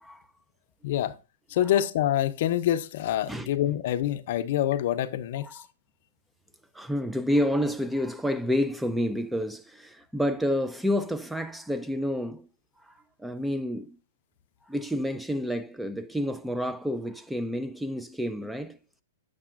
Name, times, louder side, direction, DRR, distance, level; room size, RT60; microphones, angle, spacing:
voice 1, 0.8-1.1 1.5-5.6, left 12 dB, 55° left, 0.5 m, -26 dB
voice 2, 6.7-12.5 12.8-12.9 13.2-14.0 14.7-18.8, equal, 5° right, 0.3 m, -29 dB
7.0 x 6.6 x 2.4 m
hypercardioid pair, 125°, 0 cm